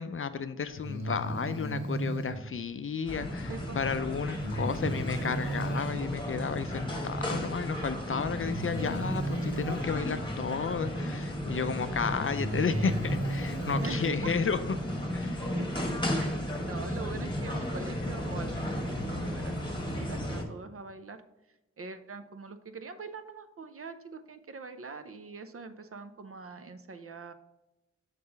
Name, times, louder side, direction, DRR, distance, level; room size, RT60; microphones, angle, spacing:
voice 1, 0.0-14.8 15.1-15.6, left 5 dB, 45° left, 11 dB, 0.4 m, -33 dB
Breathing, 0.8-2.4 4.4-6.0 7.4-7.5 8.4-9.9 11.5-11.6 12.2-14.0, right 1 dB, 80° right, 1.7 m, -34 dB
sound 1, 3.1-20.4, equal, 15° left, 1.2 m, -34 dB
voice 2, 3.5-3.8 4.6-4.7 12.5-12.9 13.8-14.3 15.6-15.9 16.2-21.2 21.8-27.3, right 4 dB, 50° right, 10 dB, 0.6 m, -43 dB
5.8 x 3.7 x 5.2 m, 0.94 s
cardioid pair, 55°, 29 cm